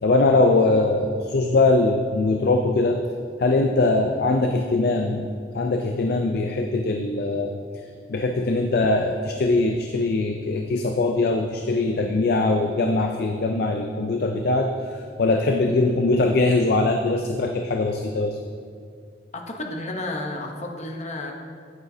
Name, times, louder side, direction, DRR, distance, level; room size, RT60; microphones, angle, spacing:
voice 1, 0.0-3.0 3.4-5.3 5.5-7.5 8.1-14.7 15.2-18.4, left 2 dB, 55° left, 4 dB, 0.4 m, -21 dB
voice 2, 19.3-21.3, left 2 dB, 40° left, 2 dB, 0.8 m, -31 dB
8.9 x 8.7 x 2.7 m, 2.2 s
head